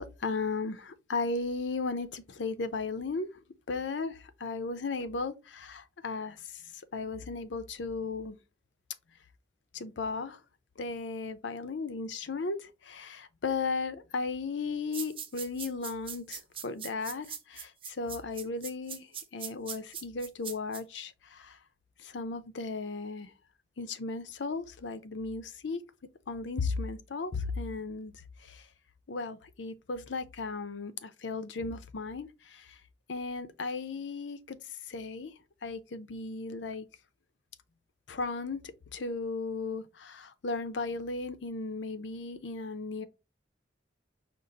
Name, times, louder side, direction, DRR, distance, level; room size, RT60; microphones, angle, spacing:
voice 1, 0.0-3.3 3.7-6.6 6.9-8.4 9.7-10.4 10.8-21.6 22.0-23.3 23.8-25.8 26.3-28.1 28.4-28.6 29.1-32.8 33.1-35.3 35.6-36.9 38.1-38.6 38.9-43.1, left 4 dB, 90° left, 0.6 m, -36 dB
sound 1, 14.9-20.8, right 8 dB, 30° right, 0.6 m, -41 dB
5.2 x 2.5 x 4.0 m
head